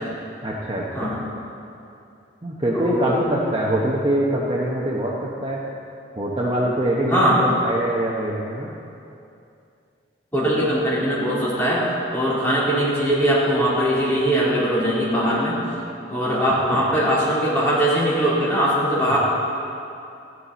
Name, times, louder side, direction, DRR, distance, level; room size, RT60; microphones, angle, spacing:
voice 1, 0.4-1.1 2.4-5.1 5.4-5.6 6.2-8.7 16.7-16.8 19.1-19.2, right 1 dB, 25° right, -4 dB, 0.9 m, -23 dB
voice 2, 2.7-3.2 7.1-7.4 10.3-11.9 12.1-15.6 16.1-19.2, equal, 10° left, -10 dB, 3.1 m, -21 dB
14.5 x 9.7 x 4.2 m, 2.6 s
head